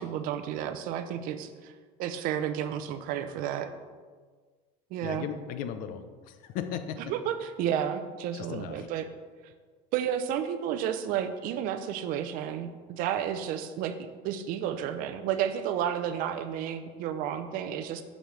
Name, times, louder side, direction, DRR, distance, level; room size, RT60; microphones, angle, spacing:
voice 1, 0.0-1.7 2.0-3.7 4.9-5.3 7.1-9.1 9.9-14.0 14.2-18.0, right 9 dB, 55° right, 9 dB, 0.5 m, -31 dB
voice 2, 5.0-7.0 8.3-8.9, left 8 dB, 55° left, 9 dB, 0.6 m, -37 dB
6.4 x 6.4 x 3.2 m, 1.5 s
cardioid pair, 150°, 17 cm